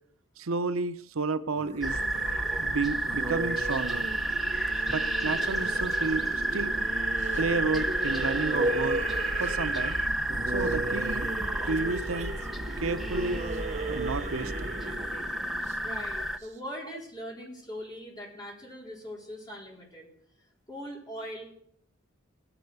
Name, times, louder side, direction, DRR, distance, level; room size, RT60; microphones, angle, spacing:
voice 1, 0.4-2.0 2.6-4.1 4.9-6.8 7.4-9.0 9.4-10.0 10.5-11.3 11.7-12.3 12.8-13.4 13.9-14.8, right 3 dB, 85° right, 12 dB, 0.7 m, -31 dB
sound 1, 1.6-16.5, right 2 dB, 35° right, 0.9 m, -36 dB
sound 2, 1.8-16.4, right 1 dB, ahead, 0.7 m, -31 dB
voice 2, 15.8-20.1 20.7-21.5, equal, 20° left, -2 dB, 4.1 m, -41 dB
15.5 x 10.0 x 8.0 m, 0.71 s
head